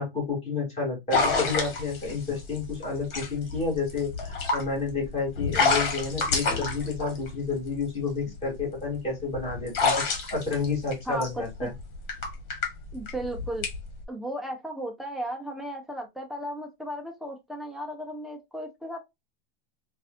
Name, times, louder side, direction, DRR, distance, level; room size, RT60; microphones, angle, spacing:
voice 1, 0.0-9.9 10.3-11.7, left 4 dB, 20° left, 2.7 m, -30 dB
sound 1, 1.1-7.8 8.4-14.0, left 4 dB, 60° left, 2.0 m, -28 dB
voice 2, 11.1-11.7 12.9-13.7 14.1-19.0, right 1 dB, ahead, 0.8 m, -35 dB
4.6 x 2.7 x 2.5 m
supercardioid pair, 140°, 29 cm